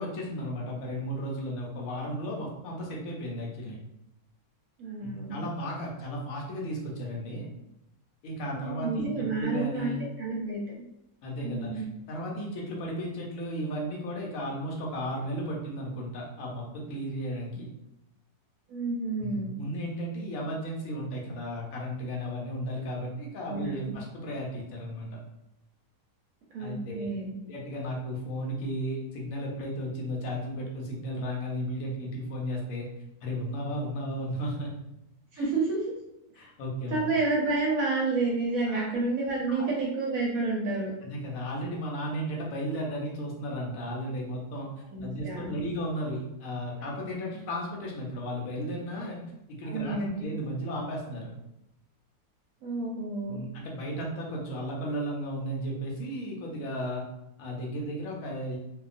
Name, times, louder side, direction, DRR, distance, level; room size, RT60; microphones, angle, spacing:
voice 1, 0.0-3.8 5.0-7.5 8.2-10.0 11.2-17.7 19.2-25.1 26.6-27.1 27.4-32.8 33.2-34.7 35.3-35.5 36.4-37.0 38.7-38.9 39.5-39.7 41.0-44.7 45.0-49.2 49.5-51.3 53.3-57.0 57.4-58.6, equal, 65° left, -2 dB, 1.1 m, -34 dB
voice 2, 4.8-5.4 8.5-10.6 11.4-11.9 18.7-19.6 23.5-24.0 26.5-27.3 35.3-35.9 36.9-40.9 44.9-45.6 49.6-50.3 52.6-53.4, right 3 dB, 70° right, -3 dB, 1.0 m, -30 dB
2.7 x 2.3 x 2.4 m, 0.84 s
omnidirectional pair, 1.6 m